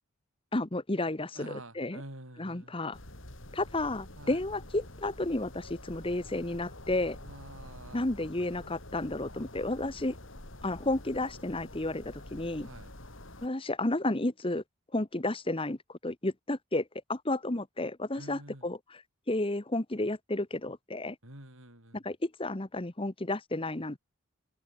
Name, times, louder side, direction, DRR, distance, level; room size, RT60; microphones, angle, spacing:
voice 1, 0.5-2.0 2.4-3.0 3.5-7.2 7.9-10.2 10.6-12.7 13.4-14.6 14.9-21.2 21.9-24.0, left 2 dB, 25° left, 1.1 m, -32 dB
voice 2, 1.3-2.8 4.2-4.4 7.2-8.1 12.6-12.9 18.2-18.7 21.2-22.0, right 1 dB, 70° right, 7.0 m, -48 dB
sound 1, 2.9-13.5, left 1 dB, 60° left, 4.0 m, -47 dB
head